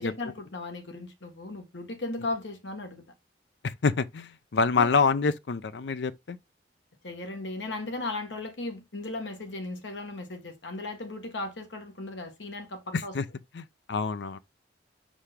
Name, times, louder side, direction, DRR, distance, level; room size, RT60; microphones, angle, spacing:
voice 1, 0.0-3.0 4.8-4.9 7.0-13.1, left 2 dB, 90° left, 1.6 m, -36 dB
voice 2, 3.6-6.4 12.9-13.3 13.5-14.4, left 5 dB, 70° left, 0.5 m, -27 dB
5.6 x 5.0 x 3.6 m
head